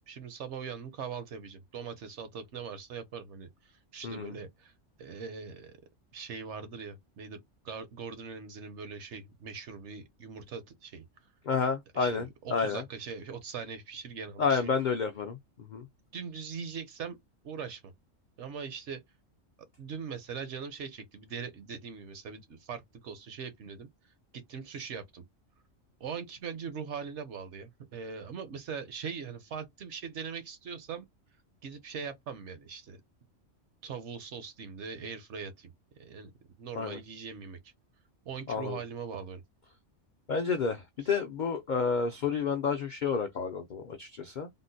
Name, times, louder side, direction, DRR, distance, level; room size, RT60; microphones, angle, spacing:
voice 1, 0.1-4.7 5.0-5.8 6.1-7.4 7.6-11.0 11.9-14.7 16.1-17.2 17.4-17.9 18.4-19.0 19.8-25.2 26.0-31.1 31.6-33.0 33.8-36.3 36.6-37.7 38.3-39.4 41.0-41.1, right 6 dB, 70° right, 0.9 m, -41 dB
voice 2, 11.5-12.8 14.4-15.4 15.7-15.9 36.8-37.0 38.5-38.8 40.3-44.5, left 5 dB, 65° left, 0.5 m, -30 dB
3.6 x 2.1 x 2.6 m
omnidirectional pair, 1.3 m